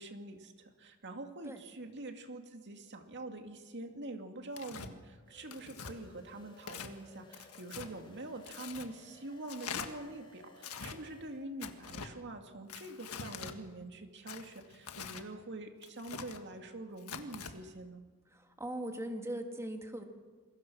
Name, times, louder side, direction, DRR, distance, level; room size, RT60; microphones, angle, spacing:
voice 1, 0.0-18.0, right 2 dB, 50° right, 5 dB, 2.4 m, -45 dB
Tearing, 4.5-4.9 5.5-5.9 6.6-6.9 7.3-7.9 8.4-8.9 9.5-9.9 10.6-11.0 11.6-12.1 12.7-13.6 14.3-15.3 15.8-16.4 17.0-17.5, left 6 dB, 75° left, 1.6 m, -44 dB
sound 1, 5.3-11.5, left 2 dB, 20° left, 2.7 m, -60 dB
voice 2, 18.3-20.0, right 1 dB, 15° right, 4 dB, 2.3 m, -40 dB
27.0 x 22.0 x 6.3 m, 1.4 s
head